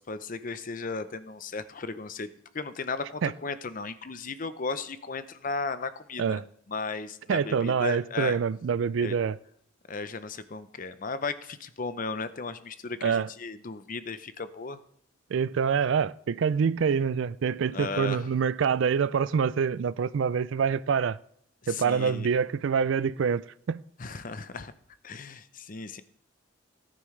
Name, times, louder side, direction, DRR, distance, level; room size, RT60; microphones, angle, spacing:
voice 1, 0.1-2.3 2.5-6.4 6.7-8.4 9.0-9.2 9.9-14.8 17.7-18.2 21.6-22.3 24.0-24.7 25.0-26.0, left 4 dB, 40° left, 0.6 m, -35 dB
voice 2, 7.3-9.4 13.0-13.3 15.3-21.2 21.7-23.4 23.7-23.8, right 6 dB, 65° right, 0.4 m, -26 dB
17.5 x 9.2 x 3.2 m
head